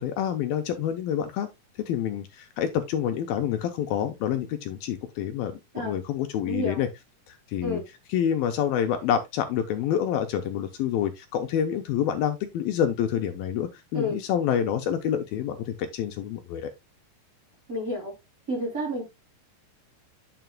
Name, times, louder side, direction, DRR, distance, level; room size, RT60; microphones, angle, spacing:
voice 1, 0.0-1.5 1.9-6.9 7.3-7.8 8.1-16.7, left 9 dB, 80° left, 2.5 m, -27 dB
voice 2, 6.5-6.9 7.6-7.8 13.9-14.2 17.7-18.2 18.5-19.0, equal, 25° right, 3.4 m, -30 dB
9.2 x 6.8 x 2.3 m
omnidirectional pair, 4.5 m